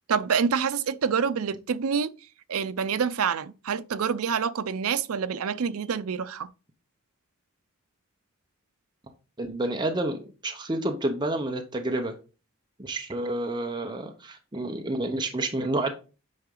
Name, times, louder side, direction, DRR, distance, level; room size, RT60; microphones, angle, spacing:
voice 1, 0.1-2.1 2.5-6.5, right 6 dB, 75° right, 0.5 m, -27 dB
voice 2, 9.4-12.1 12.8-16.0, right 1 dB, 20° right, 0.8 m, -29 dB
8.5 x 4.8 x 3.8 m
head